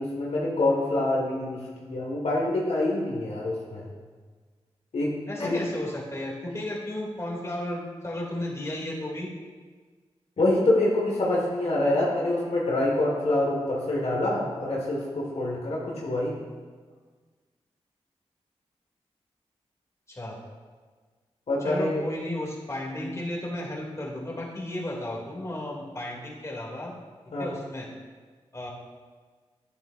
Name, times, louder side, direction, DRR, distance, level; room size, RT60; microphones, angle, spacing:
voice 1, 0.0-3.9 4.9-5.1 5.4-5.6 10.4-16.5 21.5-22.1 27.3-27.5, left 1 dB, 70° left, -4 dB, 1.6 m, -26 dB
voice 2, 5.3-9.3 20.1-20.4 21.6-26.9 27.4-27.9 28.5-28.7, left 1 dB, 25° left, -3 dB, 2.4 m, -34 dB
9.3 x 8.8 x 2.5 m, 1.5 s
cardioid pair, 50°, 11 cm